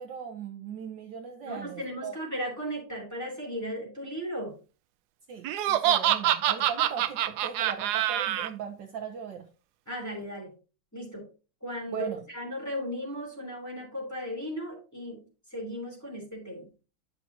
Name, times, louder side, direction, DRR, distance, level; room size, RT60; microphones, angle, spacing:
voice 1, 0.0-2.2 5.3-9.4 11.9-12.2, right 7 dB, 65° right, 3 dB, 1.4 m, -38 dB
voice 2, 1.4-4.5 9.9-10.5 10.9-11.2 11.6-15.2 15.5-16.7, equal, 5° left, -3 dB, 3.4 m, -36 dB
Laughter, 5.4-8.5, right 12 dB, 90° right, 0.8 m, -25 dB
10.5 x 5.8 x 2.8 m, 0.34 s
omnidirectional pair, 2.3 m